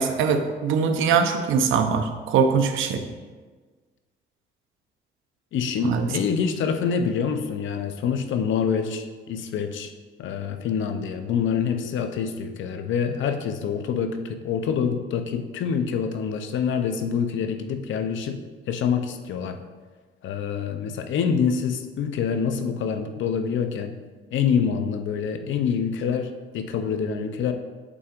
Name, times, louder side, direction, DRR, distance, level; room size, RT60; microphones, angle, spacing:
voice 1, 0.0-3.0 5.8-6.1, right 6 dB, 80° right, 6 dB, 0.7 m, -22 dB
voice 2, 5.5-9.9 10.2-18.4 18.7-19.6 20.2-23.9 24.3-27.5, left 7 dB, 75° left, 7 dB, 0.6 m, -26 dB
7.9 x 5.8 x 2.5 m, 1.4 s
cardioid pair, 90°, 20 cm